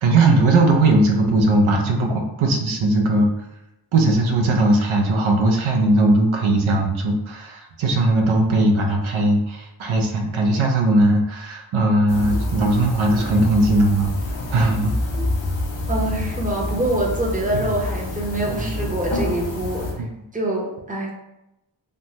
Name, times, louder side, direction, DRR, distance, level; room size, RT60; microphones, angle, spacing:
voice 1, 0.0-3.3 3.9-14.1 14.5-14.9 17.5-17.6 18.5-18.7 20.0-20.1, right 2 dB, 90° right, 2 dB, 0.5 m, -19 dB
sound 1, 12.1-19.9, left 2 dB, 70° left, 0.7 m, -27 dB
voice 2, 15.9-20.1 20.3-21.2, right 1 dB, 15° right, -2 dB, 0.6 m, -25 dB
3.2 x 2.0 x 2.7 m, 0.90 s
wide cardioid pair, 70°, 47 cm